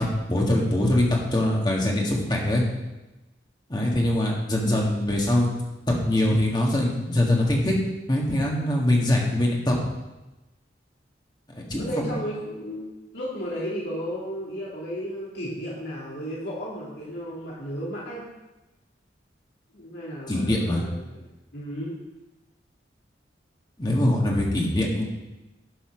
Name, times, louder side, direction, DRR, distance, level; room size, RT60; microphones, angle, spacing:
voice 1, 0.0-2.6 3.7-5.5 5.9-7.7 8.1-9.8 11.5-12.1 20.3-20.8 23.8-25.0, left 1 dB, 25° left, -2 dB, 1.7 m, -23 dB
voice 2, 11.8-12.9 13.1-18.3 19.7-21.0 21.5-21.9, equal, 65° left, -6 dB, 2.6 m, -33 dB
11.5 x 5.7 x 6.1 m, 1.0 s
head